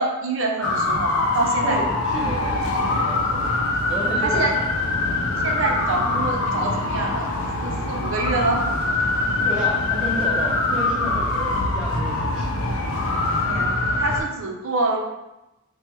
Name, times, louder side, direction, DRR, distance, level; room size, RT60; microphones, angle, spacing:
voice 1, 0.0-1.8 4.2-4.5 5.4-7.3 7.6-8.6 13.5-15.0, right 3 dB, 60° right, 1 dB, 0.6 m, -26 dB
sound 1, 0.6-14.2, left 2 dB, 70° left, 0.5 m, -23 dB
voice 2, 1.6-3.5 3.9-4.9 9.4-12.5, equal, 5° right, -6 dB, 0.8 m, -32 dB
4.3 x 2.2 x 3.0 m, 0.94 s
head